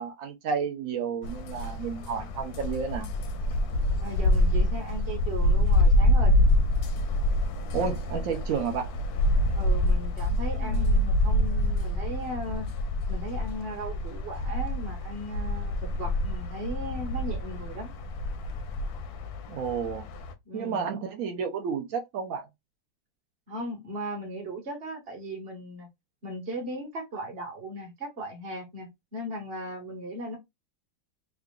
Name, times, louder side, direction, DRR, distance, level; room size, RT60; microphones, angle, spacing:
voice 1, 0.0-3.1 7.7-8.9 10.5-10.9 19.5-20.1 20.5-22.5, right 6 dB, 80° right, 0.7 m, -31 dB
sound 1, 1.2-20.3, left 1 dB, 70° left, 0.9 m, -26 dB
voice 2, 4.0-6.3 9.6-12.7 13.1-17.9 20.4-20.8 23.5-25.9 26.2-30.4, right 1 dB, 35° right, 1.2 m, -37 dB
3.7 x 2.3 x 3.6 m
omnidirectional pair, 2.2 m